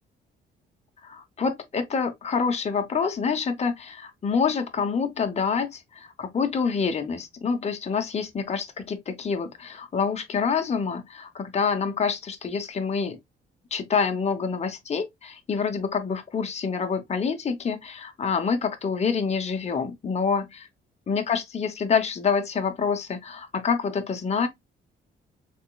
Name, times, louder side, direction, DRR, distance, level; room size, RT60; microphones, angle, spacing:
voice 1, 1.0-13.2 13.7-20.7 21.1-24.5, left 5 dB, 35° left, 0.8 m, -27 dB
3.5 x 3.4 x 2.3 m
cardioid pair, 90°, 20 cm